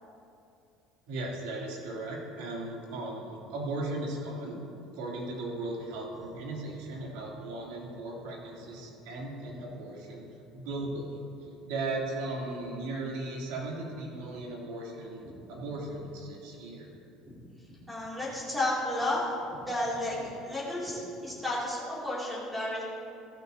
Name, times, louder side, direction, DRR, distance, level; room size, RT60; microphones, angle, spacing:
voice 1, 1.1-4.6 4.9-10.2 10.5-16.9, right 2 dB, 90° right, -3 dB, 3.2 m, -37 dB
voice 2, 17.9-19.3 19.7-22.8, left 1 dB, 5° right, -7 dB, 2.8 m, -32 dB
15.5 x 13.5 x 2.9 m, 2.6 s
cardioid pair, 175°, 0 cm